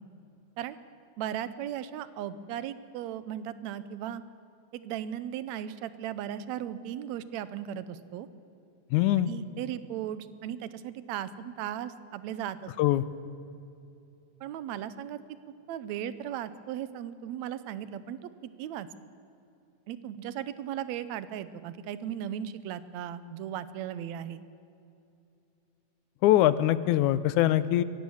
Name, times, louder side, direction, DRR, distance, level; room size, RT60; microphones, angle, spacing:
voice 1, 1.2-4.2 4.7-8.3 9.3-12.7 14.4-15.2 15.5-18.9 19.9-24.4, right 10 dB, 75° right, 14 dB, 2.0 m, -37 dB
voice 2, 8.9-9.3 12.8-13.0 26.2-27.8, left 13 dB, 85° left, 16 dB, 2.1 m, -23 dB
22.5 x 17.0 x 7.2 m, 2.8 s
omnidirectional pair, 3.4 m